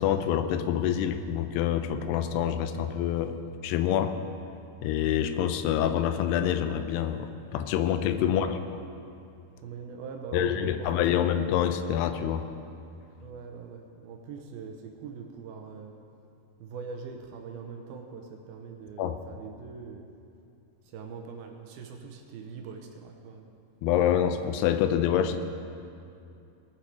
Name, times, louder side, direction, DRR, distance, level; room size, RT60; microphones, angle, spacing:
voice 1, 0.0-3.4 3.6-4.1 4.8-8.6 10.3-12.4 19.0-19.2 23.8-25.4, left 10 dB, 85° left, 9 dB, 2.7 m, -26 dB
voice 2, 9.6-11.2 13.2-15.9 16.6-20.1 20.8-23.5, right 5 dB, 80° right, 3 dB, 2.5 m, -42 dB
19.5 x 7.4 x 4.8 m, 2.6 s
omnidirectional pair, 4.8 m